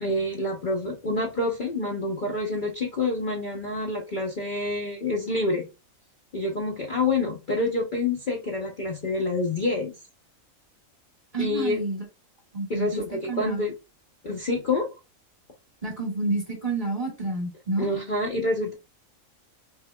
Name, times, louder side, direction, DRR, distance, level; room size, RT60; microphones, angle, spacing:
voice 1, 0.0-5.7 6.3-9.9 11.4-11.8 12.7-13.7 14.2-14.9 17.8-18.7, left 2 dB, 40° left, 0.9 m, -27 dB
voice 2, 11.3-12.0 12.5-13.0 13.3-13.6 15.8-17.9, right 2 dB, 25° right, 1.9 m, -29 dB
5.5 x 3.5 x 2.3 m
omnidirectional pair, 1.5 m